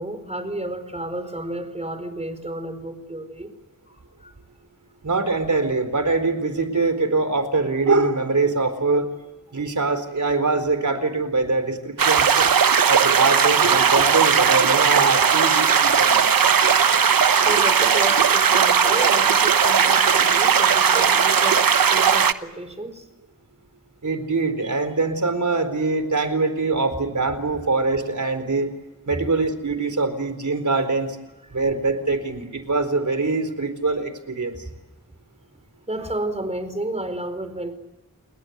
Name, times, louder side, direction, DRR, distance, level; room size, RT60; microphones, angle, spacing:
voice 1, 0.0-3.5 3.9-4.3 16.5-21.6 21.9-23.1 29.1-29.3 30.7-30.8 31.5-31.6 34.6-34.7 35.9-37.7, right 1 dB, 20° right, 9 dB, 4.6 m, -32 dB
voice 2, 5.0-9.1 9.5-12.5 12.9-16.2 24.0-28.7 29.1-31.2 31.5-34.5, right 3 dB, 60° right, 10 dB, 4.3 m, -23 dB
sound 1, 12.0-22.3, right 7 dB, 85° right, 1.1 m, -17 dB
29.5 x 21.5 x 8.2 m, 1.0 s
wide cardioid pair, 85°, 34 cm